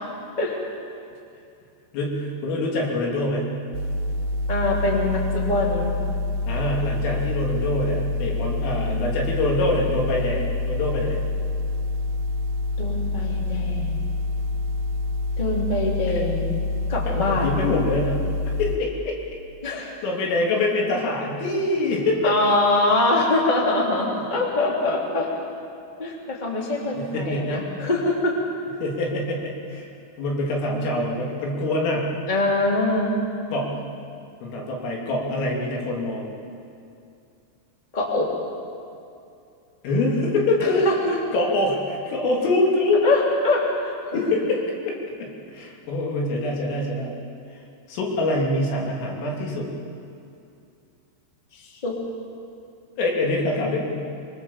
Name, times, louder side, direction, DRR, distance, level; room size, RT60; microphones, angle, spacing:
voice 1, 1.9-3.5 6.5-11.2 16.1-16.2 17.1-18.2 18.5-19.2 19.8-22.3 26.9-27.7 28.8-29.9 30.2-32.1 33.5-33.8 34.4-36.3 39.8-40.9 41.3-43.0 44.1-47.2 47.9-49.7 53.0-53.9, left 2 dB, 75° left, -2 dB, 5.7 m, -25 dB
sound 1, 3.7-18.8, left 2 dB, 80° right, 2.1 m, -27 dB
voice 2, 4.5-5.9 12.8-14.0 15.4-16.6 16.9-17.6 19.6-19.9 22.2-25.3 26.0-28.3 32.3-33.1 37.9-38.3 40.6-41.2 43.0-44.2 51.5-51.9, left 2 dB, 10° left, -2 dB, 2.4 m, -23 dB
24.5 x 23.0 x 7.4 m, 2.5 s
omnidirectional pair, 5.8 m